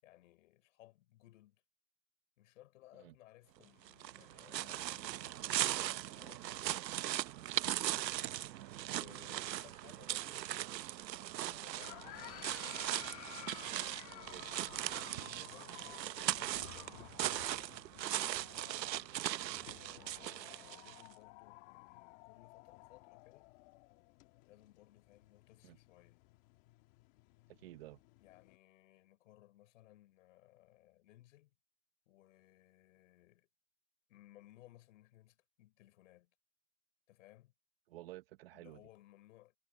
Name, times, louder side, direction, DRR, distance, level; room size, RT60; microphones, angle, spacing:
voice 1, 0.0-1.6 2.4-6.7 8.9-10.4 11.2-13.0 14.0-17.8 18.5-19.2 19.8-23.5 24.4-26.2 28.2-31.5 32.1-33.5 34.1-36.3 37.1-37.5 38.5-39.6, left 15 dB, 50° left, 5.7 m, -62 dB
sound 1, 3.9-21.1, right 13 dB, 85° right, 0.9 m, -39 dB
sound 2, 11.8-28.6, left 22 dB, 30° left, 1.4 m, -55 dB
sound 3, 11.9-15.5 16.3-17.9, left 10 dB, 75° left, 2.5 m, -61 dB
voice 2, 27.5-28.0 37.9-38.8, right 16 dB, 35° right, 0.9 m, -52 dB
hypercardioid pair, 160°, 49 cm